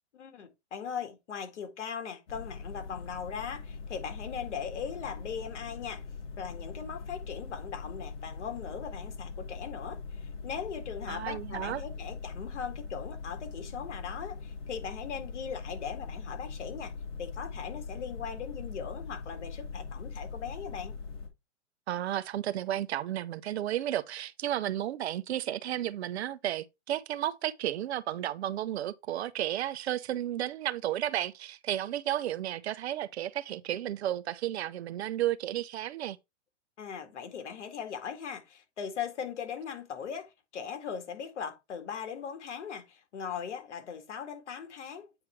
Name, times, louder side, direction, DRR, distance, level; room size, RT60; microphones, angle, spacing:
voice 1, 0.2-6.0 6.4-16.9 17.2-20.9 36.8-45.1, left 7 dB, 70° left, 2.0 m, -39 dB
sound 1, 2.3-21.3, left 5 dB, 55° left, 2.5 m, -41 dB
voice 2, 11.1-11.8 21.9-36.2, right 12 dB, 60° right, 0.7 m, -33 dB
8.9 x 3.4 x 4.5 m
hypercardioid pair, 145°, 36 cm